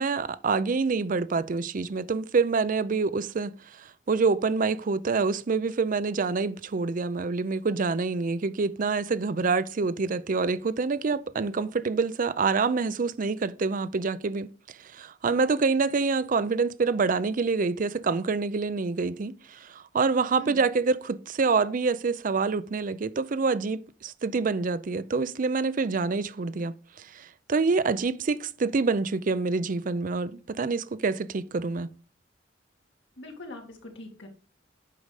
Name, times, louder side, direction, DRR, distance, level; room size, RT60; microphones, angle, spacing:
voice 1, 0.0-31.9, right 4 dB, 45° right, 0.5 m, -27 dB
voice 2, 33.2-34.3, left 1 dB, 80° left, 2.3 m, -42 dB
8.4 x 5.4 x 4.8 m
head